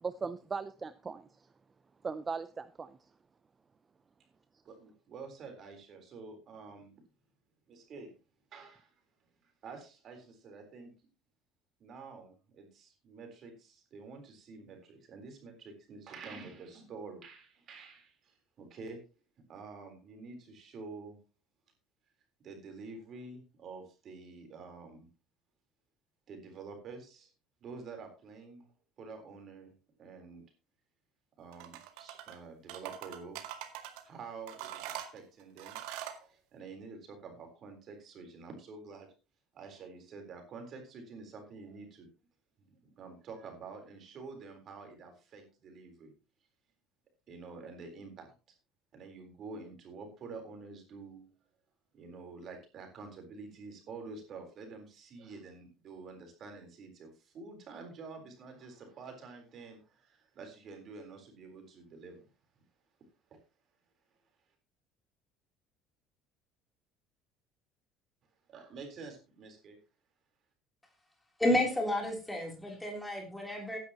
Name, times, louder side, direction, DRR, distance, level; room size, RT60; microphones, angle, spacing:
voice 1, 0.0-1.5 2.0-3.0, right 5 dB, 15° right, 12 dB, 0.5 m, -38 dB
voice 2, 4.6-6.9 7.7-8.1 8.5-8.9 9.4-10.9 11.8-19.0 19.5-21.2 22.4-25.1 26.3-27.3 27.6-28.7 29.0-29.7 30.0-30.4 31.4-33.4 34.0-39.1 39.5-42.1 42.6-46.1 47.3-48.3 48.9-51.2 51.9-62.3 63.3-63.4 68.5-69.8, right 4 dB, 35° right, 4 dB, 3.8 m, -48 dB
sound 1, 31.5-32.4 32.7-34.0 34.5-36.2, right 11 dB, 90° right, 2.0 m, -43 dB
voice 3, 71.4-73.8, left 1 dB, 5° left, 0 dB, 3.2 m, -31 dB
15.5 x 10.5 x 2.9 m, 0.31 s
cardioid pair, 180°, 0 cm